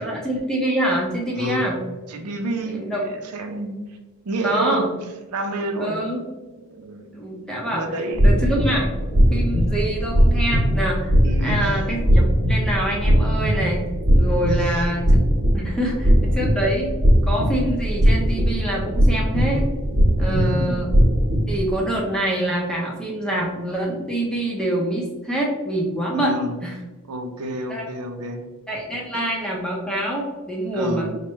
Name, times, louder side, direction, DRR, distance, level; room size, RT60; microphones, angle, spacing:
voice 1, 0.0-1.8 2.7-3.0 4.4-4.9 5.8-6.2 7.1-7.8 8.2-8.9 9.3-11.1 11.4-13.8 14.1-15.2 15.5-16.9 17.2-19.7 20.2-20.9 21.5-26.3 26.6-26.7 27.7-27.8 28.7-31.1, right 1 dB, 5° left, -3 dB, 0.6 m, -25 dB
voice 2, 1.3-1.7 2.1-3.8 4.2-5.0 5.3-7.2 7.7-8.3 11.2-11.6 14.5-14.9 20.2-20.9 26.1-26.6 27.1-28.4 29.1-29.2 30.7-31.2, right 1 dB, 85° right, 4 dB, 0.5 m, -29 dB
sound 1, 8.1-21.7, equal, 70° right, 1.0 m, -19 dB
4.5 x 2.1 x 3.1 m, 1.2 s
head